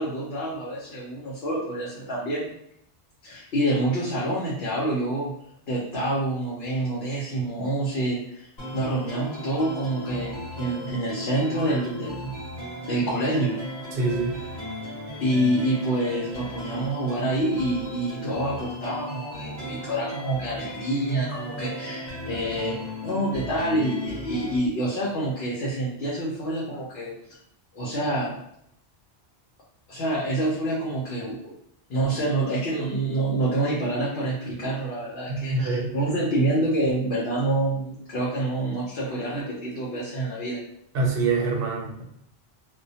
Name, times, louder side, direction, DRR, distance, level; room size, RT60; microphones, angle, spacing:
voice 1, 0.0-2.5 3.2-5.3 5.7-8.5 8.7-12.3 12.9-13.5 15.2-22.8 23.0-27.1 27.7-28.4 29.9-31.5 31.9-40.6, right 1 dB, 75° left, -6 dB, 0.9 m, -27 dB
sound 1, 8.6-24.6, equal, 45° left, 1.0 m, -36 dB
voice 2, 13.9-14.5 35.3-35.9 40.9-42.0, right 3 dB, 70° right, 0 dB, 0.8 m, -25 dB
2.2 x 2.1 x 2.7 m, 0.73 s
omnidirectional pair, 1.1 m